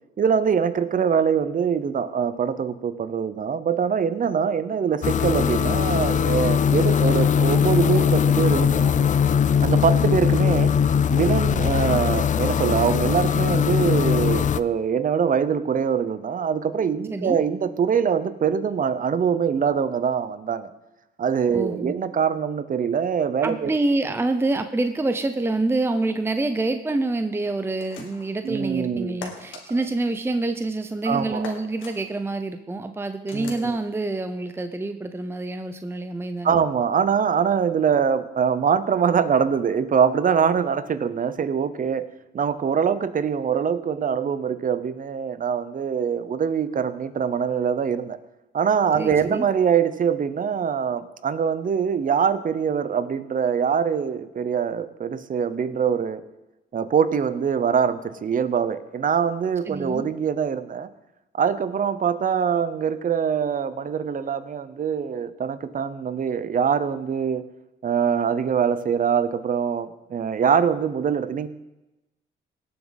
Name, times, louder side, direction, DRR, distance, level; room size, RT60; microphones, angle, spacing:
voice 1, 0.2-8.9 9.6-10.7 11.1-20.7 21.2-23.7 28.4-29.2 31.0-31.5 33.3-33.8 36.4-42.1 42.3-48.2 48.5-56.2 56.7-60.9 61.3-67.4 67.8-71.5, right 7 dB, 45° right, 14 dB, 0.8 m, -23 dB
sound 1, 5.0-14.6, left 7 dB, 40° left, 0.4 m, -20 dB
voice 2, 21.5-21.9 23.4-36.5 49.0-49.4 59.7-60.1, right 2 dB, 10° right, 8 dB, 0.7 m, -27 dB
sound 2, 27.8-28.4 29.2-29.6 31.4-32.0 33.3-33.7, left 5 dB, 85° left, 1.9 m, -39 dB
18.0 x 7.4 x 4.0 m, 0.99 s
cardioid pair, 90°, 20 cm